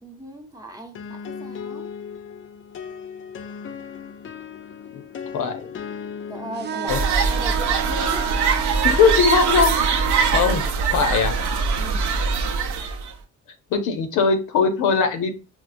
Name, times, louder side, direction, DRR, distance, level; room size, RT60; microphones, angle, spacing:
voice 1, 0.0-1.9 6.3-8.6 11.8-12.2, right 1 dB, 10° right, 0.8 m, -38 dB
sound 1, 0.9-10.5, left 6 dB, 45° left, 0.4 m, -38 dB
voice 2, 5.3-5.7 6.9-7.0 8.8-11.4 13.7-15.4, left 5 dB, 85° left, 0.7 m, -21 dB
sound 2, 6.5-10.7, right 7 dB, 35° right, 0.4 m, -30 dB
sound 3, 6.9-13.1, right 5 dB, 75° right, 0.6 m, -22 dB
4.5 x 2.1 x 2.5 m
cardioid pair, 90°, 30 cm